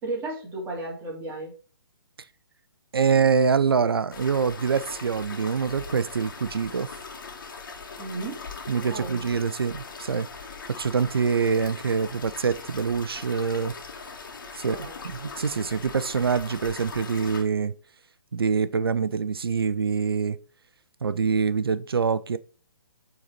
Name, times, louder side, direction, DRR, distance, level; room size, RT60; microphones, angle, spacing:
voice 1, 0.0-1.5 8.0-8.4 8.8-9.3 14.6-15.0, right 2 dB, 20° right, 2.9 m, -34 dB
voice 2, 2.9-6.9 8.7-10.3 10.7-13.7 14.6-17.7 18.3-20.4 21.0-22.4, right 5 dB, 80° right, 0.5 m, -25 dB
sound 1, 4.1-17.4, left 4 dB, 60° left, 2.1 m, -40 dB
8.4 x 4.1 x 4.2 m
figure-of-eight pair, 135°, 12 cm